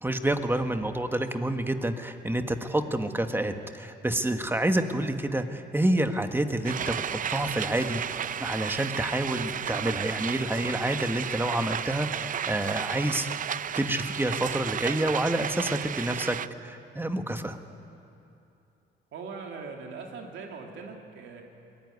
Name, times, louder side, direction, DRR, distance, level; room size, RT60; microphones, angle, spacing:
voice 1, 0.0-13.3 13.7-17.6, right 1 dB, 10° right, 7 dB, 1.4 m, -28 dB
sound 1, 6.6-16.5, right 9 dB, 45° right, 0.5 m, -33 dB
voice 2, 19.1-21.4, right 4 dB, 75° right, 1 dB, 2.9 m, -40 dB
22.5 x 18.5 x 9.6 m, 2.7 s
cardioid pair, 90°, 20 cm